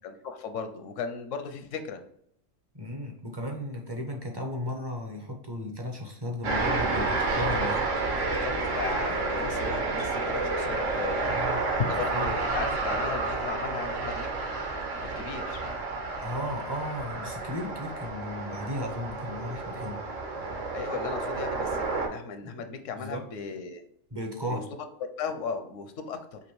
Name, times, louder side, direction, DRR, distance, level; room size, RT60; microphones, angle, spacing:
voice 1, 0.0-2.0 8.3-11.3 11.8-14.3 15.0-15.6 20.7-23.8 24.5-24.6 25.2-26.4, left 6 dB, 80° left, 8 dB, 1.0 m, -36 dB
voice 2, 2.7-7.8 11.2-11.7 12.1-12.4 16.2-20.1 22.9-23.3 24.1-24.7, left 1 dB, 25° right, 1 dB, 0.5 m, -35 dB
sound 1, 6.4-22.1, right 3 dB, 55° right, 1.1 m, -30 dB
sound 2, 7.1-12.2, left 2 dB, 85° right, 1.9 m, -40 dB
5.2 x 2.8 x 3.1 m, 0.68 s
omnidirectional pair, 1.3 m